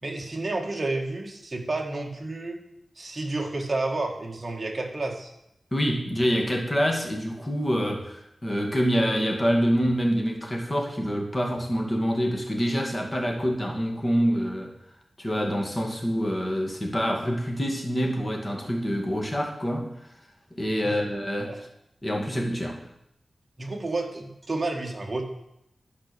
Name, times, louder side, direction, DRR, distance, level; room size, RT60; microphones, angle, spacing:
voice 1, 0.0-2.6 2.9-5.3 20.8-21.0 21.4-21.6 23.6-25.2, right 2 dB, 30° right, 1 dB, 1.7 m, -30 dB
voice 2, 5.7-14.7 15.2-19.9 20.6-21.6 22.0-22.8, equal, 20° left, 1 dB, 1.9 m, -26 dB
11.5 x 5.4 x 6.8 m, 0.80 s
wide cardioid pair, 135°, 0 cm